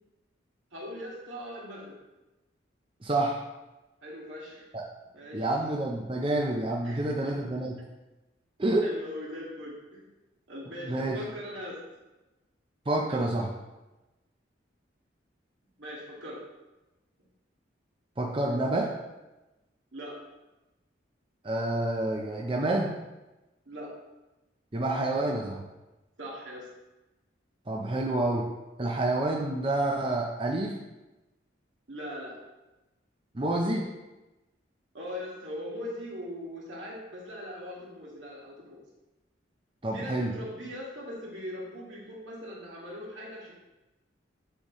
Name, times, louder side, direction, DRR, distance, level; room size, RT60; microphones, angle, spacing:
voice 1, 0.7-2.0 4.0-4.6 5.1-5.5 6.8-7.4 8.8-10.0 10.5-11.8 13.1-13.3 15.8-16.4 18.9-19.0 19.9-20.2 23.7-23.9 26.2-26.7 31.9-32.4 34.9-38.8 39.9-43.5, equal, 75° right, -4 dB, 1.9 m, -40 dB
voice 2, 3.0-3.4 4.7-4.8 5.3-7.8 8.6-8.9 10.9-11.2 12.9-13.5 18.2-18.9 21.4-22.9 24.7-25.6 27.7-28.5 28.8-30.8 33.3-33.9 39.8-40.3, right 2 dB, 25° right, -1 dB, 0.6 m, -28 dB
9.9 x 4.0 x 3.1 m, 1.0 s
head